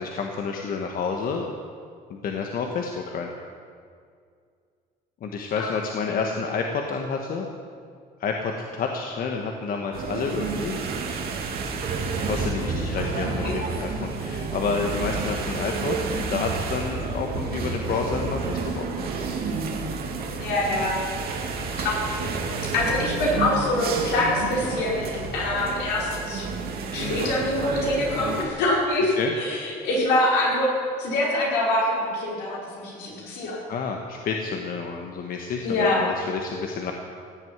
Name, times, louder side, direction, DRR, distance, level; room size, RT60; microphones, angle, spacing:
voice 1, 0.0-1.5 2.1-3.3 5.2-7.5 8.2-10.8 12.2-19.1 22.5-22.6 24.6-24.7 27.0-27.3 29.2-29.3 33.7-36.9, left 5 dB, 60° left, 2 dB, 1.4 m, -29 dB
sound 1, 9.9-28.5, right 4 dB, 65° right, 2.3 m, -30 dB
voice 2, 13.2-13.6 20.4-20.9 21.8-22.4 22.7-25.1 25.3-26.5 26.9-33.6 35.6-36.0, left 1 dB, 85° left, -4 dB, 5.3 m, -25 dB
16.5 x 8.0 x 9.5 m, 2.2 s
cardioid pair, 110°, 17 cm